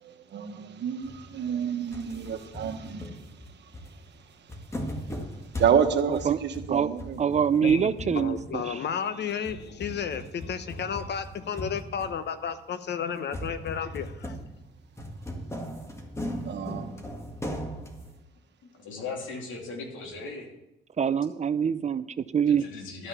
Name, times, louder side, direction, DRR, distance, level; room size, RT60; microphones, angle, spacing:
voice 1, 0.0-3.7 5.6-7.3 7.6-7.8 16.4-16.9, right 7 dB, 60° right, 7 dB, 1.3 m, -29 dB
sound 1, 1.0-1.6 1.9-8.9 9.3-12.6 13.3-18.2, equal, 15° left, 1.8 m, -39 dB
voice 2, 6.1-6.4 6.7-6.9 7.2-8.8 21.0-22.7, right 7 dB, 35° right, 15 dB, 0.5 m, -25 dB
voice 3, 7.6-14.4, left 7 dB, 60° left, 11 dB, 1.0 m, -32 dB
voice 4, 18.7-20.5 22.5-23.1, left 3 dB, 80° left, 0 dB, 2.8 m, -38 dB
12.5 x 5.7 x 8.2 m, 0.89 s
cardioid pair, 90°, 20 cm